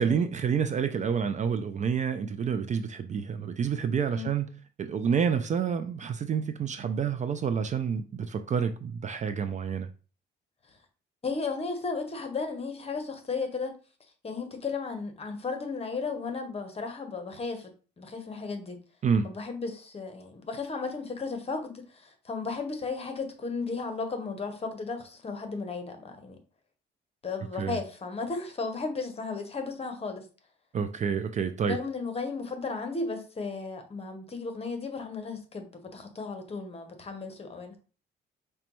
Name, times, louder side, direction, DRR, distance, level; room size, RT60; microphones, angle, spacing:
voice 1, 0.0-4.5 4.8-9.9 19.0-19.3 27.5-27.8 30.7-31.8, right 7 dB, 40° right, 0.4 m, -28 dB
voice 2, 11.2-13.8 14.2-17.7 18.0-18.8 19.2-26.4 27.2-30.3 31.7-37.8, left 4 dB, 30° left, 0.9 m, -34 dB
5.0 x 2.2 x 3.0 m
cardioid pair, 90°, 20 cm